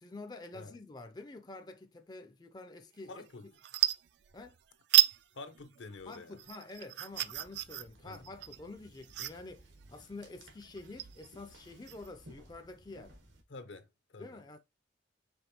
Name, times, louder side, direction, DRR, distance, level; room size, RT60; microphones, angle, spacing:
voice 1, 0.0-3.5 4.3-4.6 6.1-13.2 14.2-14.6, left 2 dB, 20° left, 0.4 m, -48 dB
sound 1, 3.0-3.3 3.6-4.6 4.9-5.2 5.5-12.1, right 15 dB, 60° right, 0.3 m, -32 dB
voice 2, 3.1-3.5 5.3-6.4 8.0-8.3 13.5-14.4, left 3 dB, 75° left, 0.7 m, -48 dB
sound 2, 7.1-13.4, equal, 90° right, 1.4 m, -59 dB
5.1 x 3.4 x 2.8 m
head